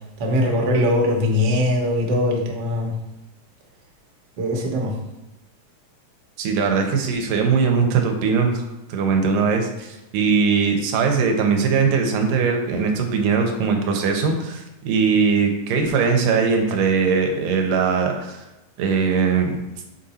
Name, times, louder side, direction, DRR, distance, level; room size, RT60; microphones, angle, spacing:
voice 1, 0.2-2.9 4.4-4.9, left 1 dB, 65° right, 0 dB, 1.5 m, -21 dB
voice 2, 6.4-8.6 8.9-18.4 18.8-19.5, right 5 dB, 85° right, 3 dB, 2.3 m, -20 dB
5.9 x 3.8 x 4.1 m, 0.95 s
omnidirectional pair, 3.8 m